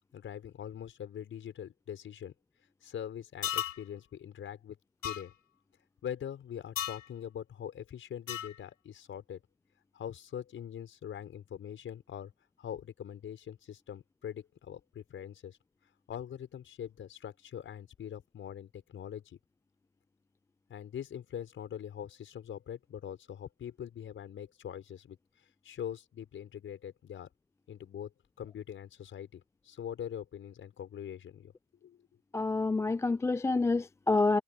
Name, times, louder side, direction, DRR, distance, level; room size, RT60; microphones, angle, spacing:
voice 1, 0.1-2.3 2.8-4.8 5.0-5.3 6.0-9.4 9.9-12.3 12.6-15.6 16.1-19.4 20.7-25.2 25.6-27.3 27.7-28.1 28.4-31.5 31.8-32.0, left 9 dB, 30° left, 5.2 m, -43 dB
sound 1, 3.4-3.8 5.0-5.2 6.8-7.0 8.3-8.6, left 11 dB, 75° left, 6.3 m, -34 dB
voice 2, 32.3-34.4, left 3 dB, 5° left, 0.6 m, -28 dB
figure-of-eight pair, 85°, 40 cm